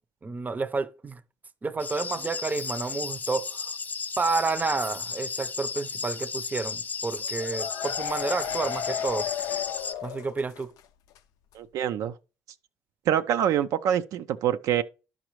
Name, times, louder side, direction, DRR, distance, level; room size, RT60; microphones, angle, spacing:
voice 1, 0.2-1.2 1.6-3.7 4.2-9.3 10.0-10.7, right 4 dB, 30° right, 0.6 m, -30 dB
sound 1, 1.8-9.9, left 5 dB, 30° left, 0.4 m, -34 dB
sound 2, 7.2-10.8 11.1-11.2 11.5-11.6, left 9 dB, 85° left, 0.4 m, -34 dB
voice 2, 11.5-12.1 13.1-14.8, right 10 dB, 75° right, 0.4 m, -25 dB
11.0 x 5.1 x 3.0 m
supercardioid pair, 70°, 6 cm